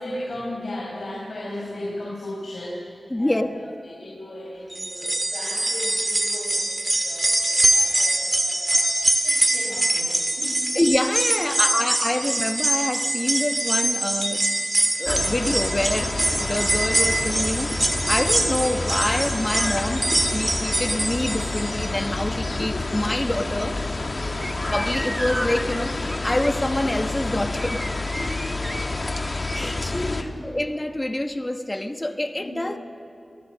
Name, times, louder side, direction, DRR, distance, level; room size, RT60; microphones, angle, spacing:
voice 1, 0.0-10.7 11.4-12.0 24.1-24.6 28.1-29.3 29.7-30.5 32.4-32.8, left 1 dB, 60° left, -5 dB, 5.9 m, -37 dB
voice 2, 3.1-3.6 10.7-14.5 15.0-17.8 18.1-20.1 20.3-23.8 24.7-27.8 29.5-30.1 30.4-33.0, left 1 dB, 20° left, 7 dB, 1.3 m, -26 dB
sound 1, 4.7-22.0 22.4-22.5 23.6-23.7, right 1 dB, 30° right, 2.0 m, -24 dB
sound 2, 15.0-30.2, left 2 dB, 45° left, 1.6 m, -28 dB
sound 3, 24.4-30.0, equal, 5° right, 0.8 m, -36 dB
28.0 x 19.0 x 6.4 m, 2.7 s
cardioid pair, 50°, 0 cm